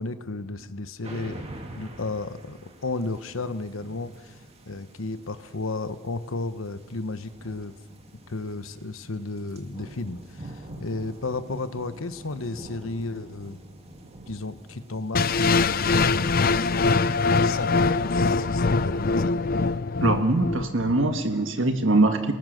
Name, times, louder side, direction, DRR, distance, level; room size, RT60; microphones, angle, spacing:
voice 1, 0.0-1.5 1.7-4.4 4.7-7.7 8.3-13.6 14.3-17.1 17.4-19.4, left 3 dB, 80° left, 11 dB, 1.1 m, -33 dB
sound 1, 1.0-18.8, right 1 dB, 30° right, 2.2 m, -46 dB
sound 2, 15.1-21.2, left 4 dB, 45° left, 0.6 m, -23 dB
voice 2, 20.0-22.3, right 2 dB, 65° right, 6 dB, 1.7 m, -22 dB
29.5 x 19.5 x 6.6 m, 1.3 s
head